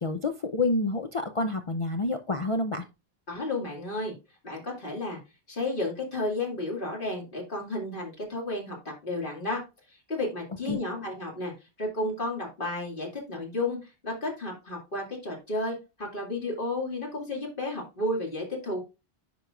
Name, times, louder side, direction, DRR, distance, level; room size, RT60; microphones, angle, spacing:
voice 1, 0.0-2.8 10.7-10.8, left 2 dB, 40° left, 6 dB, 0.5 m, -28 dB
voice 2, 3.3-4.1 4.4-5.2 5.5-9.6 9.9-11.5 11.8-18.8, left 2 dB, 55° left, -1 dB, 2.4 m, -32 dB
10.5 x 4.5 x 2.4 m, 0.27 s
omnidirectional pair, 1.0 m